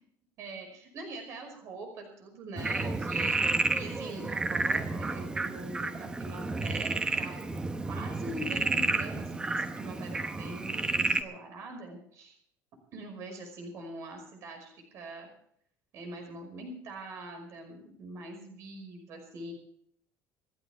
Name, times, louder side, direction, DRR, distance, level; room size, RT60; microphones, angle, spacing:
voice 1, 0.4-7.6 7.9-12.4 12.9-15.3 15.9-19.5, right 2 dB, 45° right, 4 dB, 5.5 m, -43 dB
Frog, 2.6-11.2, right 3 dB, 10° right, 0.8 m, -31 dB
27.5 x 11.0 x 3.5 m, 0.64 s
cardioid pair, 175°, 7 cm